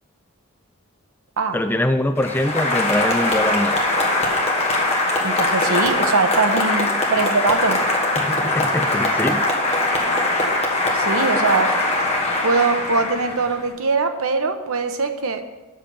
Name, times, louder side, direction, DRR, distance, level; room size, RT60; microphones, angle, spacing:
voice 1, 1.5-3.8 8.2-9.4, left 1 dB, 10° left, 8 dB, 0.3 m, -23 dB
Applause, 2.2-13.7, left 2 dB, 30° left, 1.4 m, -21 dB
voice 2, 5.2-7.8 10.9-11.7 12.4-15.4, right 4 dB, 70° right, 7 dB, 0.8 m, -22 dB
7.5 x 6.0 x 6.9 m, 1.1 s
head